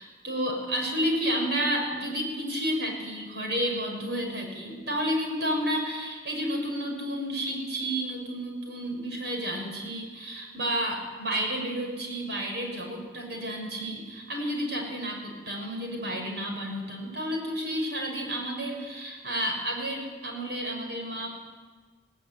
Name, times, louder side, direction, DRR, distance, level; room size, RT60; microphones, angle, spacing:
voice 1, 0.0-21.3, equal, 75° right, 1 dB, 6.4 m, -31 dB
18.5 x 18.0 x 9.4 m, 1.4 s
head